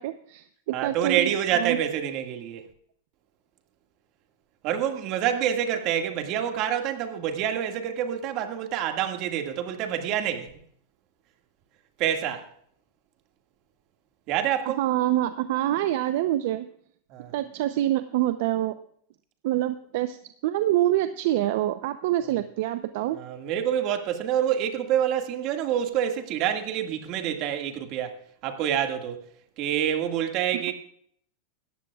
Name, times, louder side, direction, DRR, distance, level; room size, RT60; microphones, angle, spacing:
voice 1, 0.0-1.8 14.6-16.7 17.3-18.7 19.4-20.2 20.4-23.2, right 13 dB, 65° right, 0.7 m, -26 dB
voice 2, 0.7-2.6 4.6-10.5 12.0-12.5 14.3-14.8 17.1-17.3 23.1-29.2 29.6-30.7, right 9 dB, 45° right, 2.0 m, -27 dB
18.5 x 14.0 x 2.4 m
supercardioid pair, 140°, 0 cm